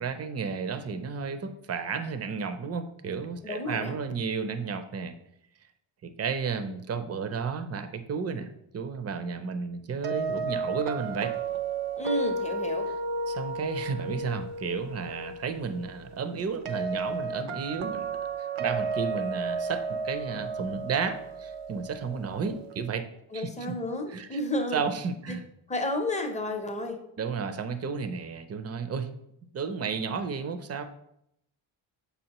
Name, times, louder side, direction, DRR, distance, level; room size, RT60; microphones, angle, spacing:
voice 1, 0.0-5.2 6.0-8.5 8.7-11.3 13.3-23.1 23.3-23.7 24.1-24.4 24.7-25.4 27.2-29.1 29.4-30.8, right 5 dB, 30° right, 9 dB, 0.5 m, -32 dB
voice 2, 3.4-3.9 12.0-12.9 23.3-24.8 25.3-25.4 25.7-27.0, left 1 dB, 15° left, 4 dB, 0.6 m, -31 dB
sound 1, 10.0-22.9, right 3 dB, 80° right, 0.7 m, -33 dB
6.9 x 5.5 x 2.9 m, 0.77 s
wide cardioid pair, 145°, 49 cm